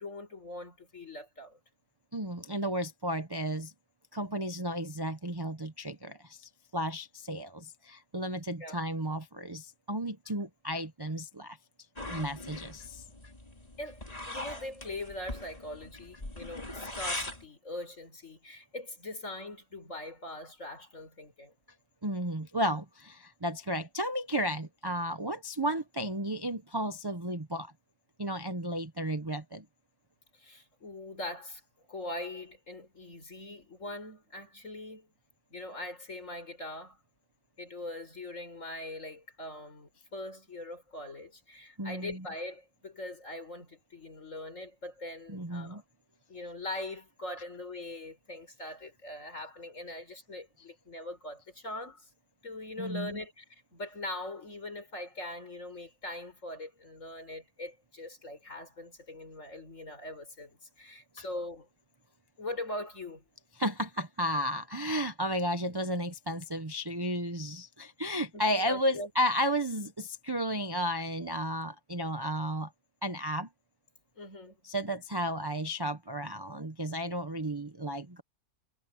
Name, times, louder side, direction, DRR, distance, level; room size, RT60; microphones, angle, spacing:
voice 1, 0.0-1.6 8.6-8.8 13.1-13.2 13.8-21.5 30.3-31.6 31.9-35.1 35.5-37.0 37.6-45.8 46.3-52.1 52.4-61.7 62.4-63.2 68.3-69.1 74.2-74.6, left 1 dB, 50° left, 5.7 m, -42 dB
voice 2, 2.1-3.7 4.1-11.6 12.1-13.0 22.0-27.7 28.2-29.7 41.8-42.2 45.3-45.8 52.8-53.2 61.2-61.3 63.6-72.7 73.0-73.5 74.6-78.2, equal, 20° right, 0.8 m, -33 dB
sound 1, 12.0-17.4, left 1 dB, 25° left, 3.2 m, -41 dB
omnidirectional pair, 1.7 m